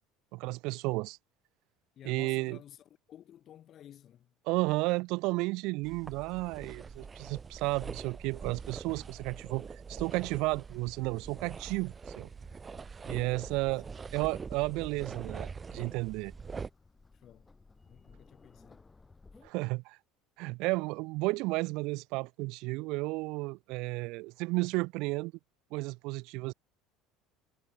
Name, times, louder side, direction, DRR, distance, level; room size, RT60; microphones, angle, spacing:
voice 1, 0.3-1.2 2.0-2.6 4.5-12.3 13.1-13.8 14.1-16.3 19.4-20.0 20.4-25.3 25.7-26.5, right 24 dB, 70° right, 0.5 m, -33 dB
voice 2, 1.9-4.3 13.1-13.8 17.1-17.5 17.8-18.8 19.3-19.4, left 11 dB, 45° left, 3.2 m, -54 dB
sound 1, 5.8-16.7, right 5 dB, 25° right, 0.7 m, -44 dB
sound 2, 12.3-19.5, left 3 dB, 15° left, 3.0 m, -60 dB
supercardioid pair, 100°, 0 cm